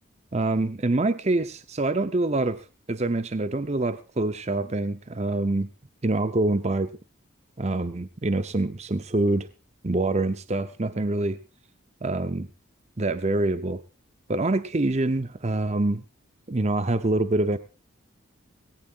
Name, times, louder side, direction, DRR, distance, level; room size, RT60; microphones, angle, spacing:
voice 1, 0.3-5.7 6.0-6.9 7.6-9.5 9.8-11.4 12.0-12.5 13.0-13.8 14.3-16.0 16.5-17.6, right 2 dB, 30° right, 12 dB, 0.7 m, -25 dB
19.0 x 17.5 x 2.4 m, 0.33 s
head